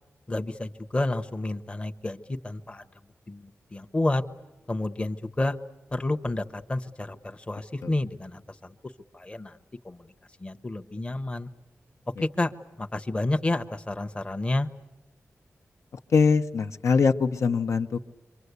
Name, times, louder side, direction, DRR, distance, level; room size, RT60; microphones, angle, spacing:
voice 1, 0.3-2.8 3.3-4.2 4.7-5.6 5.9-8.7 9.1-9.6 9.8-10.1 10.4-11.5 12.2-12.5 12.8-14.7, left 2 dB, 20° left, 7 dB, 0.8 m, -30 dB
voice 2, 16.1-18.0, left 5 dB, 75° left, 7 dB, 0.9 m, -22 dB
27.5 x 24.0 x 8.1 m, 1.1 s
wide cardioid pair, 160°, 5 cm